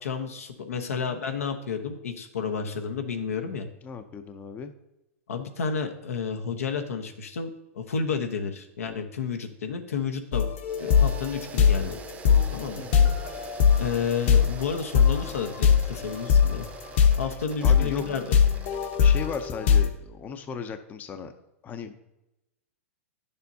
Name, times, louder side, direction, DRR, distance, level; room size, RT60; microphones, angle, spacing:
voice 1, 0.0-3.7 5.3-10.5 10.8-12.0 12.5-12.8 13.8-16.7 17.2-18.4, left 6 dB, 90° left, 5 dB, 1.0 m, -31 dB
voice 2, 0.7-1.2 3.8-4.7 12.8-13.1 17.6-18.0 19.0-21.3 21.6-21.9, left 6 dB, 20° left, 8 dB, 0.6 m, -37 dB
sound 1, 10.3-19.9, left 7 dB, 55° left, 1.1 m, -21 dB
sound 2, 10.7-19.5, right 5 dB, 20° right, 0.7 m, -44 dB
10.5 x 6.9 x 2.7 m, 0.96 s
hypercardioid pair, 130°, 8 cm